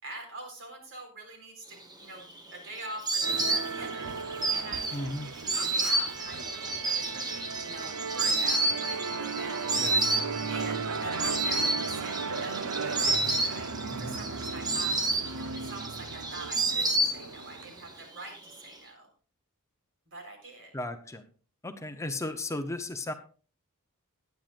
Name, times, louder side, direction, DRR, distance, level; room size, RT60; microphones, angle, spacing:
voice 1, 0.0-4.1 4.5-9.7 10.5-19.1 20.1-20.7, right 2 dB, 60° right, 3 dB, 4.1 m, -44 dB
Insect, 1.9-17.6 17.9-18.7, right 2 dB, 20° right, 1.3 m, -30 dB
Musical instrument, 3.2-17.9, right 5 dB, 75° right, 0.8 m, -36 dB
voice 2, 4.9-5.3 9.8-10.0 13.9-14.2 20.7-21.2 21.6-23.1, left 1 dB, 15° left, 7 dB, 0.7 m, -35 dB
17.5 x 10.5 x 2.5 m, 0.39 s
head